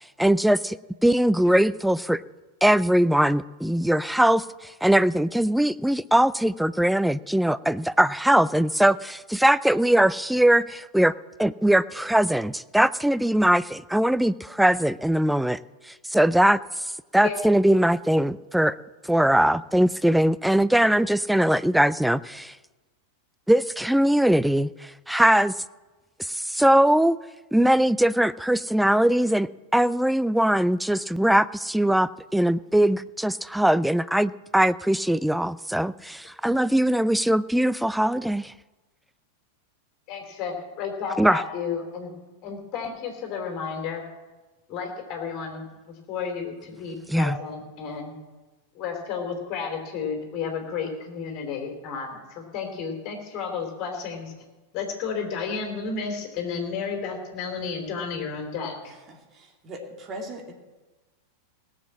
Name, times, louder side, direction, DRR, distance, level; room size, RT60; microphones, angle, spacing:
voice 1, 0.2-0.8 1.0-2.2 2.6-11.1 11.4-15.6 16.1-16.6 17.1-18.8 19.1-22.5 23.5-25.5 26.2-27.2 27.5-38.5 41.2-41.4 47.1-47.4, right 1 dB, ahead, 17 dB, 0.3 m, -21 dB
voice 2, 40.1-42.1 42.4-44.0 44.7-48.2 48.7-54.3 54.7-58.9, left 5 dB, 40° left, 3 dB, 3.2 m, -32 dB
voice 3, 58.9-59.2 59.6-60.5, right 1 dB, 25° right, 2 dB, 2.6 m, -38 dB
17.5 x 7.4 x 7.4 m, 1.2 s
figure-of-eight pair, 90°, 0 cm